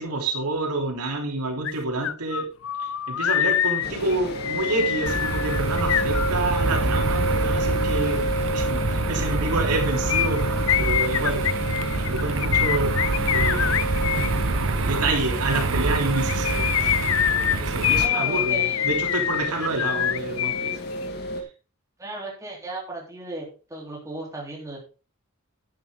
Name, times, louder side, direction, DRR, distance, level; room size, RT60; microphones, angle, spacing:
voice 1, 0.0-2.5 2.8-11.4 11.9-13.8 14.8-16.8 17.3-20.8, right 2 dB, 90° right, 1 dB, 3.3 m, -28 dB
sound 1, 1.6-1.7 2.0-6.8 10.1-14.3 16.1-20.8 21.0-21.1, left 11 dB, 60° left, 0.5 m, -25 dB
sound 2, 3.8-21.4, equal, 45° left, 1.7 m, -31 dB
sound 3, 5.1-18.1, right 3 dB, 60° right, 0.9 m, -26 dB
voice 2, 18.0-18.9 22.0-24.8, right 2 dB, 15° right, -2 dB, 3.3 m, -35 dB
10.0 x 9.8 x 3.7 m, 0.33 s
head